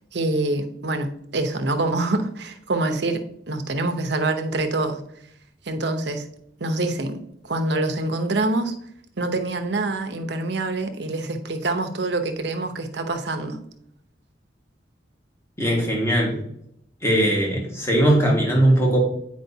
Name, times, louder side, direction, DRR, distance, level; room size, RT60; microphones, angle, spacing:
voice 1, 0.1-5.0 5.7-6.3 6.6-8.7 9.2-13.6, right 2 dB, 65° right, 7 dB, 0.8 m, -25 dB
voice 2, 15.6-16.3 17.0-19.0, right 1 dB, 15° left, -2 dB, 1.7 m, -19 dB
9.1 x 4.9 x 2.7 m, 0.73 s
head